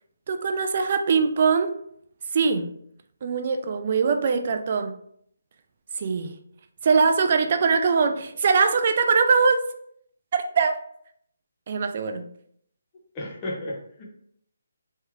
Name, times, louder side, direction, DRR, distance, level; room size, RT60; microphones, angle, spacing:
voice 1, 0.3-1.7 2.3-2.7 3.2-4.9 6.0-6.4 6.8-9.6 10.3-10.8 11.7-12.3, right 5 dB, 40° right, 7 dB, 0.4 m, -22 dB
voice 2, 13.1-14.0, left 1 dB, 15° left, -4 dB, 0.8 m, -33 dB
3.2 x 3.0 x 3.5 m, 0.67 s
hypercardioid pair, 170°, 0 cm